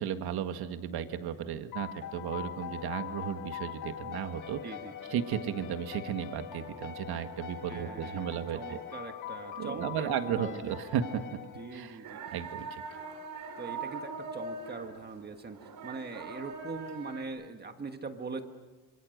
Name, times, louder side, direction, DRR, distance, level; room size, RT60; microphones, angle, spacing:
voice 1, 0.0-4.6 5.1-8.8 9.6-11.2 11.7-12.0 12.3-12.8, right 9 dB, 90° right, 8 dB, 1.8 m, -34 dB
sound 1, 1.7-12.1, left 9 dB, 55° left, 2.4 m, -42 dB
voice 2, 4.6-5.1 7.7-10.7 11.5-12.2 13.6-18.4, right 4 dB, 25° right, 6 dB, 1.5 m, -42 dB
sound 2, 12.0-17.2, right 4 dB, 65° right, 4.1 m, -42 dB
27.5 x 27.0 x 6.6 m, 1.2 s
cardioid pair, 165°, 37 cm